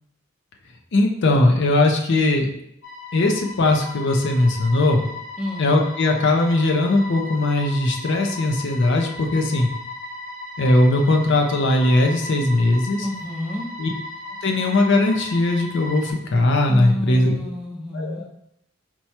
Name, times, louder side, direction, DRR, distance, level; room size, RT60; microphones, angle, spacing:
voice 1, 0.9-2.5 3.1-5.1 5.6-9.7 10.6-13.1 13.8-13.9 14.4-17.3 17.9-18.3, left 2 dB, 55° left, 2 dB, 0.5 m, -19 dB
sound 1, 2.8-16.1, left 1 dB, 80° left, 1.3 m, -36 dB
voice 2, 13.0-13.7 16.7-18.2, left 1 dB, 5° right, -2 dB, 0.6 m, -30 dB
4.4 x 2.2 x 4.2 m, 0.77 s
head